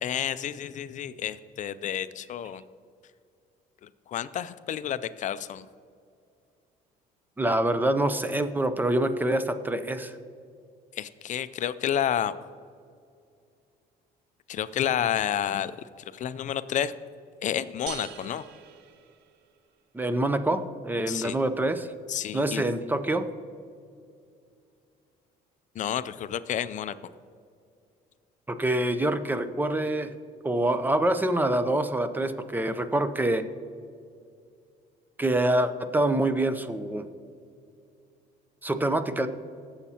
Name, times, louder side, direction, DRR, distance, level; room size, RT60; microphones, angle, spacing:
voice 1, 0.0-2.6 3.8-5.7 10.9-12.3 14.5-15.7 16.0-16.9 17.4-18.4 21.1-21.4 22.1-22.7 25.7-26.9, left 10 dB, 50° left, 14 dB, 0.4 m, -30 dB
voice 2, 7.4-10.2 19.9-21.9 22.3-23.3 28.5-30.1 30.4-33.4 35.2-37.1 38.6-39.3, right 1 dB, 10° right, 11 dB, 0.6 m, -26 dB
sound 1, 17.9-19.7, right 9 dB, 85° right, 0.6 m, -43 dB
19.0 x 7.2 x 2.8 m, 2.4 s
cardioid pair, 110°, 17 cm